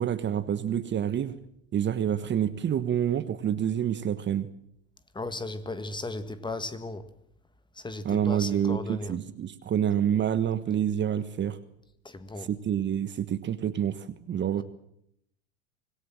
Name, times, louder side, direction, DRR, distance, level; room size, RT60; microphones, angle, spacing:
voice 1, 0.0-1.4 1.7-4.5 8.0-11.6 12.4-14.6, right 9 dB, 30° right, 1.4 m, -27 dB
voice 2, 5.1-7.1 7.8-9.2 12.0-12.5 14.6-14.7, left 2 dB, 10° left, 1.8 m, -36 dB
25.5 x 18.5 x 7.7 m
hypercardioid pair, 85°, 37 cm